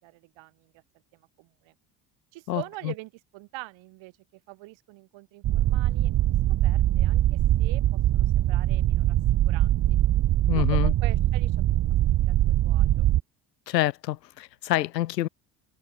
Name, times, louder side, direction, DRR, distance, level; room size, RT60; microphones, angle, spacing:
voice 1, 0.0-0.8 1.1-1.7 2.3-6.4 6.6-9.2 9.4-10.0 10.6-11.6 12.0-13.1, right 21 dB, 70° right, 5.2 m, -44 dB
voice 2, 2.5-2.9 10.5-10.9 13.7-15.3, left 14 dB, 90° left, 2.7 m, -27 dB
sound 1, 5.4-13.2, right 13 dB, 50° right, 1.8 m, -22 dB
hypercardioid pair, 65°, 48 cm